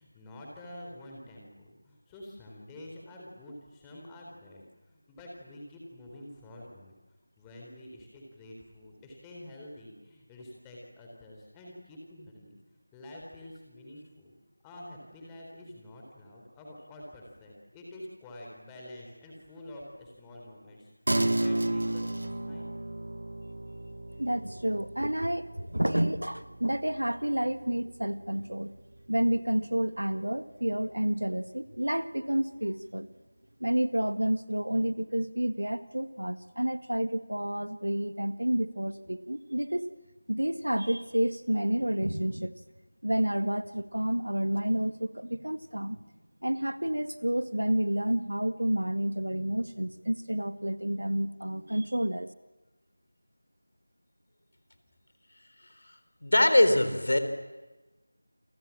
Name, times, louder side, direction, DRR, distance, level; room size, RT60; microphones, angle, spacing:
voice 1, 0.0-6.9 7.4-12.6 12.9-14.3 14.6-22.7, left 1 dB, 10° left, -2 dB, 4.2 m, -48 dB
sound 1, 21.1-30.8, right 1 dB, 65° right, 1.8 m, -35 dB
voice 2, 24.2-28.7 29.1-33.1 33.6-39.9 40.3-42.5 43.0-46.0 46.4-52.3, right 1 dB, 80° right, 12 dB, 1.7 m, -30 dB
voice 3, 56.2-57.2, left 1 dB, 60° left, 9 dB, 3.8 m, -21 dB
29.0 x 25.0 x 7.4 m, 1.2 s
figure-of-eight pair, 170°, 0 cm